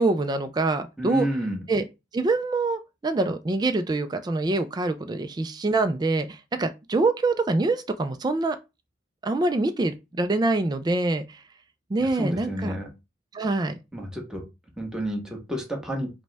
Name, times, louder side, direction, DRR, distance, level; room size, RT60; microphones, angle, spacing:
voice 1, 0.0-1.3 1.7-1.8 2.1-8.6 9.2-11.4 11.9-12.8 13.3-13.8, right 2 dB, 20° right, 0.3 m, -25 dB
voice 2, 1.0-1.6 12.0-12.9 13.9-14.4 14.8-16.2, equal, 5° right, 1.0 m, -30 dB
5.2 x 2.2 x 3.3 m
head